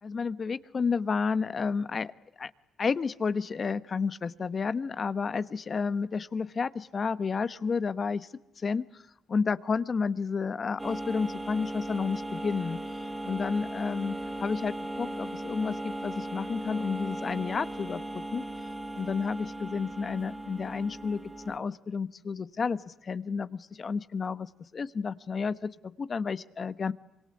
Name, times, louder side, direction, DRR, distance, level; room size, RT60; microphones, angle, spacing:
voice 1, 0.0-2.1 2.4-2.5 2.8-8.3 8.6-9.0 9.3-18.4 18.9-21.2 21.5-26.9, left 5 dB, 40° left, 15 dB, 1.1 m, -31 dB
sound 1, 10.8-21.6, right 1 dB, 10° right, 3.0 m, -37 dB
26.0 x 23.5 x 9.8 m, 0.85 s
cardioid pair, 90°, 0 cm